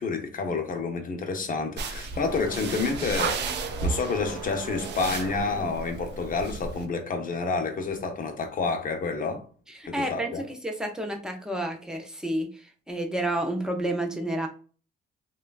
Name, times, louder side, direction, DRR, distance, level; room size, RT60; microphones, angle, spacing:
voice 1, 0.0-9.4 9.9-10.4, left 4 dB, 45° left, 0.7 m, -29 dB
sound 1, 0.5-8.4, right 4 dB, 85° right, 0.9 m, -42 dB
sound 2, 1.8-6.8, right 4 dB, 60° right, 0.4 m, -34 dB
voice 2, 9.8-14.5, right 1 dB, 5° right, 0.7 m, -30 dB
3.1 x 2.3 x 2.3 m
cardioid pair, 90°, 20 cm